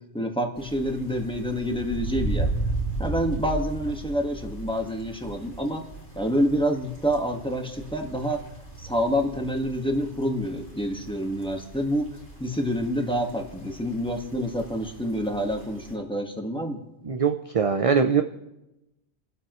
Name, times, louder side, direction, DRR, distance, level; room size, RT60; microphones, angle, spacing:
voice 1, 0.1-2.5 3.0-5.8 6.1-8.4 8.8-12.1 12.4-16.8, equal, 5° left, 2 dB, 1.5 m, -27 dB
sound 1, 0.6-15.9, right 2 dB, 85° left, 3.5 m, -36 dB
voice 2, 17.0-18.2, right 6 dB, 40° right, 7 dB, 0.6 m, -22 dB
29.5 x 12.5 x 3.1 m, 0.92 s
omnidirectional pair, 1.1 m